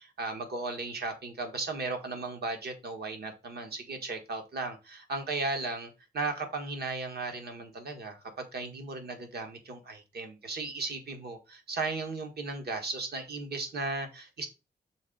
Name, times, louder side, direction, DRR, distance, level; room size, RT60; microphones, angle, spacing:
voice 1, 0.0-14.5, right 3 dB, 70° right, 5 dB, 1.4 m, -36 dB
6.3 x 4.3 x 3.8 m, 0.28 s
wide cardioid pair, 140°, 17 cm